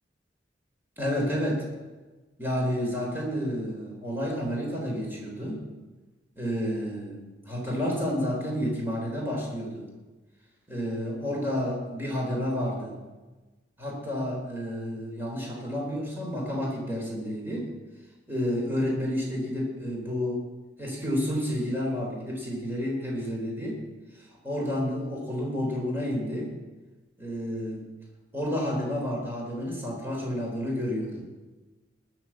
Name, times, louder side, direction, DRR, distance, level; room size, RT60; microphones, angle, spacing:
voice 1, 1.0-1.6 2.4-5.6 6.4-9.9 10.7-13.0 13.8-17.7 18.3-20.4 20.8-23.8 24.4-26.5 27.2-27.8 28.3-31.3, equal, 15° right, -2 dB, 3.6 m, -30 dB
20.5 x 7.2 x 7.2 m, 1.2 s
head